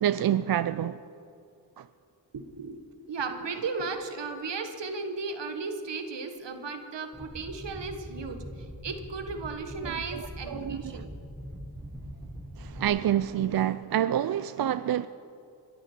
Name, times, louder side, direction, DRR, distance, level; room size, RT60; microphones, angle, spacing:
voice 1, 0.0-1.0 1.8-1.9 9.8-11.1 12.6-15.1, right 11 dB, 60° right, 0.5 m, -28 dB
voice 2, 2.3-2.8 3.1-11.1, right 4 dB, 75° right, 1.5 m, -35 dB
sound 1, 7.1-12.9, equal, ahead, 4.5 m, -42 dB
22.5 x 12.5 x 4.5 m
cardioid pair, 45°, 43 cm